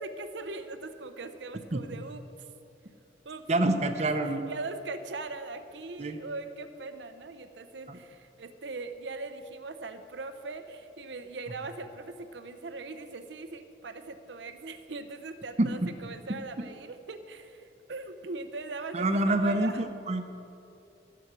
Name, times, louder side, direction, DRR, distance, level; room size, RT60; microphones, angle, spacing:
voice 1, 0.0-2.2 3.2-3.4 4.0-19.8, right 3 dB, 75° right, 9 dB, 0.7 m, -40 dB
voice 2, 3.5-4.5 6.0-6.2 7.9-8.0 15.6-15.9 18.9-20.2, right 1 dB, 35° right, 7 dB, 0.7 m, -27 dB
15.0 x 7.0 x 6.1 m, 2.7 s
head